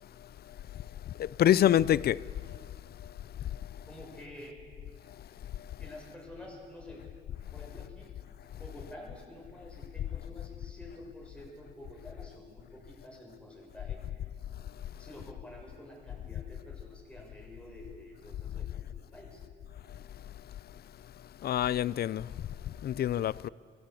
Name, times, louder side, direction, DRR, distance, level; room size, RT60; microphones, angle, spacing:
voice 1, 1.2-2.2 21.4-22.3 22.8-23.5, left 11 dB, 50° left, 0.5 m, -26 dB
voice 2, 3.9-4.6 5.8-7.0 7.5-8.1 8.5-14.3 14.9-19.4, left 1 dB, 5° left, 7.2 m, -49 dB
22.0 x 16.0 x 8.4 m
cardioid pair, 90°, 20 cm